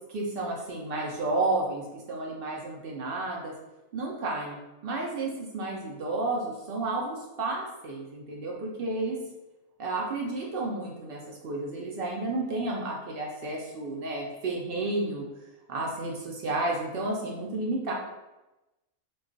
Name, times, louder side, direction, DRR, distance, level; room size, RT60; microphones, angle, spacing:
voice 1, 0.1-3.5 3.9-9.2 9.8-15.2 15.7-17.9, right 2 dB, 70° right, -2 dB, 0.5 m, -31 dB
2.3 x 2.3 x 3.7 m, 1.0 s
omnidirectional pair, 1.5 m